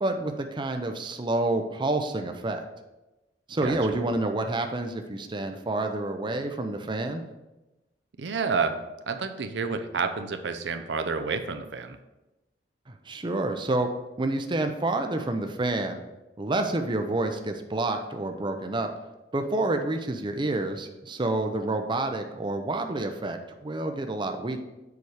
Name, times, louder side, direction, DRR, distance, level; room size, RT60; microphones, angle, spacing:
voice 1, 0.0-2.6 3.5-7.2 13.1-13.9 14.2-16.0 16.4-18.9 19.3-24.6, right 2 dB, 25° right, 6 dB, 0.6 m, -28 dB
voice 2, 8.2-8.8 9.1-12.0, right 5 dB, 75° right, 8 dB, 0.6 m, -29 dB
7.1 x 4.7 x 4.8 m, 1.0 s
head